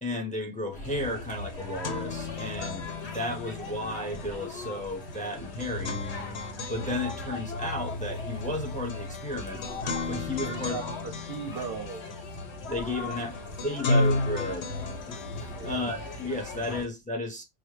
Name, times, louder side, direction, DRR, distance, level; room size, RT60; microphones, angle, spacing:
voice 1, 0.0-6.0 6.7-9.6 10.1-10.8 12.7-13.3 13.6-14.7 15.1-17.4, left 1 dB, 10° left, 0.6 m, -33 dB
sound 1, 0.7-16.8, left 2 dB, 70° left, 1.2 m, -39 dB
sound 2, 0.9-1.0 1.3-16.9, left 2 dB, 90° left, 1.0 m, -35 dB
voice 2, 10.4-12.1 13.0-13.2 15.5-15.8, right 6 dB, 65° right, 0.7 m, -38 dB
4.9 x 2.2 x 3.1 m
omnidirectional pair, 1.1 m